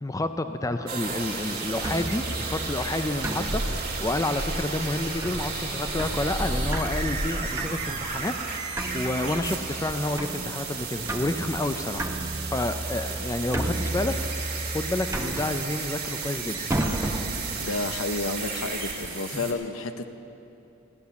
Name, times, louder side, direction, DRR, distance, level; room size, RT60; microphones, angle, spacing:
voice 1, 0.0-3.6 4.0-8.3 8.9-12.1 12.5-14.1 14.7-16.6 19.3-19.5, left 2 dB, 15° left, 8 dB, 0.4 m, -29 dB
sound 1, 0.9-19.5, right 4 dB, 45° right, 2.4 m, -34 dB
sound 2, 1.8-18.7, right 1 dB, 15° right, 0.9 m, -33 dB
voice 2, 17.6-20.1, left 3 dB, 75° left, 9 dB, 0.8 m, -31 dB
16.5 x 10.0 x 7.0 m, 2.9 s
head